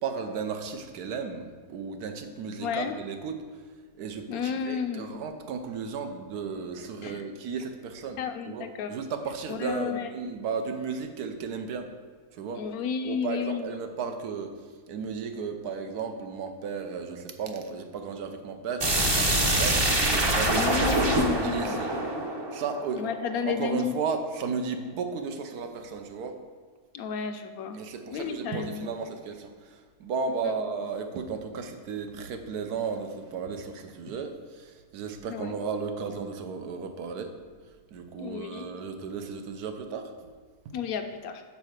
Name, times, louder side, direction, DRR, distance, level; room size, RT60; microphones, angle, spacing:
voice 1, 0.0-3.4 4.0-8.2 8.5-11.9 12.3-12.7 13.0-14.5 14.9-20.8 21.1-21.9 22.5-23.1 23.5-26.4 27.7-37.3 37.9-40.1, right 5 dB, 80° right, 6 dB, 1.2 m, -34 dB
voice 2, 2.6-3.0 4.3-5.2 7.0-7.2 8.2-8.9 9.5-10.1 12.5-13.7 20.5-21.7 23.0-23.9 26.9-27.8 28.1-28.9 30.4-30.6 35.3-35.5 38.2-38.7 40.7-41.4, left 7 dB, 75° left, 7 dB, 1.0 m, -32 dB
sound 1, 18.8-23.5, right 1 dB, 25° right, 0.6 m, -25 dB
5.7 x 4.4 x 6.4 m, 1.5 s
omnidirectional pair, 1.6 m